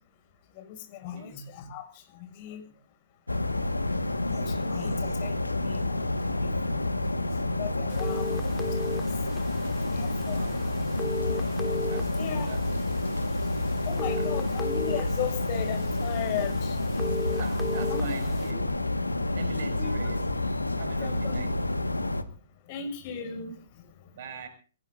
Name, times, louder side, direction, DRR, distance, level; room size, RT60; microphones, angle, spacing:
voice 1, 0.5-2.6 4.3-9.1 9.9-10.5 12.1-12.5 13.8-16.8 17.9-18.2 18.5-18.6 19.8-19.9 21.0-21.4 22.7-23.9, left 8 dB, 40° left, 5 dB, 6.4 m, -37 dB
sound 1, 3.3-22.2, left 2 dB, 90° left, 1.7 m, -29 dB
sound 2, 7.9-18.5, left 2 dB, 5° left, 1.7 m, -38 dB
voice 2, 10.3-10.6 11.9-12.7 14.1-14.3 17.3-18.6 19.3-20.3 20.7-21.6 24.1-24.5, right 5 dB, 50° right, 5 dB, 6.2 m, -42 dB
25.5 x 19.0 x 2.7 m, 0.40 s
figure-of-eight pair, 120°, 0 cm